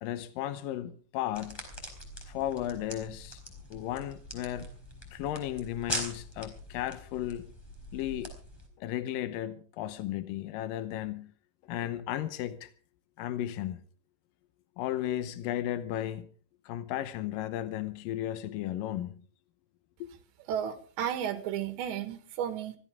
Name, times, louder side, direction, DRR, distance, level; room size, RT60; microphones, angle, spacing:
voice 1, 0.0-1.6 2.3-3.4 3.7-4.7 5.1-7.5 7.9-8.3 8.8-11.3 11.7-12.7 13.2-13.8 14.8-16.3 16.7-19.2 20.0-20.1, left 12 dB, 80° left, 2.0 m, -34 dB
sound 1, 1.3-8.7, equal, 5° left, 3.6 m, -42 dB
voice 2, 20.5-22.8, right 9 dB, 80° right, 3.9 m, -33 dB
24.0 x 15.5 x 3.6 m
omnidirectional pair, 5.2 m